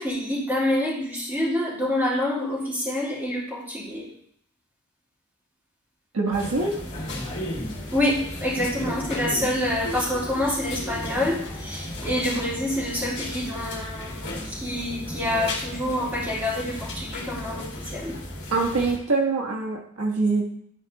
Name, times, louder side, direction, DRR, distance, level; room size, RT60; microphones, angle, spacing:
voice 1, 0.0-4.0 7.9-18.1, left 1 dB, 10° right, -8 dB, 3.2 m, -27 dB
voice 2, 6.1-6.7 18.5-20.5, right 3 dB, 80° right, 1 dB, 1.4 m, -24 dB
sound 1, 6.3-19.0, left 1 dB, 50° left, 2.2 m, -34 dB
11.5 x 4.7 x 4.0 m, 0.67 s
head